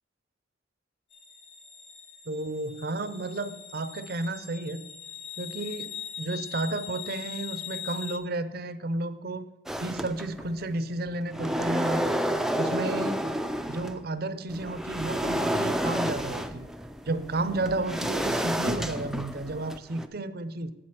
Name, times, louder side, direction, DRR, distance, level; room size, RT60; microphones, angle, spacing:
sound 1, 1.1-8.2, left 9 dB, 70° left, 1.6 m, -41 dB
voice 1, 2.3-4.9 5.4-5.9 6.2-9.5 9.8-12.1 12.6-13.2 13.7-16.7 17.1-20.7, right 2 dB, 55° right, 13 dB, 0.6 m, -32 dB
sound 2, 9.7-10.6 11.1-14.0 14.5-20.1, equal, 5° right, 0.4 m, -30 dB
8.2 x 7.6 x 5.9 m, 1.0 s
head